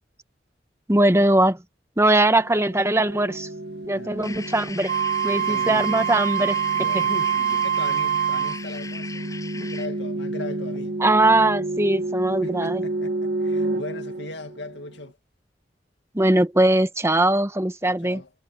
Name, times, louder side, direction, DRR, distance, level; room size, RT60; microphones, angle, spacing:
voice 1, 0.9-1.6 2.0-3.5 3.8-4.9 5.2-6.6 6.9-7.0 9.5-9.7 11.0-12.8 16.1-18.2, right 1 dB, 15° right, 1.0 m, -20 dB
sound 1, 2.3-15.0, right 2 dB, 65° right, 1.9 m, -31 dB
voice 2, 3.9-4.5 5.2-5.9 6.7-11.0 12.4-15.2 17.8-18.3, left 2 dB, 85° left, 2.1 m, -39 dB
sound 2, 4.2-10.0, left 3 dB, 20° left, 7.9 m, -38 dB
Wind instrument woodwind instrument, 4.9-8.6, right 9 dB, 50° right, 0.4 m, -24 dB
head